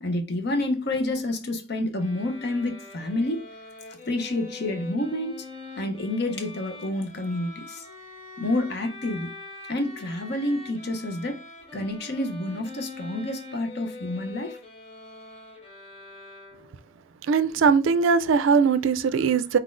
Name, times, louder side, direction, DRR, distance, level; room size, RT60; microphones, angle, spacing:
voice 1, 0.0-3.5 3.9-5.5 5.8-7.9 8.4-9.3 9.7-11.4 11.7-14.6, left 1 dB, 55° left, 0.8 m, -29 dB
sound 1, 2.0-16.9, left 3 dB, 30° left, 1.2 m, -44 dB
voice 2, 17.3-19.6, right 5 dB, 75° right, 0.4 m, -20 dB
4.3 x 3.9 x 2.5 m
head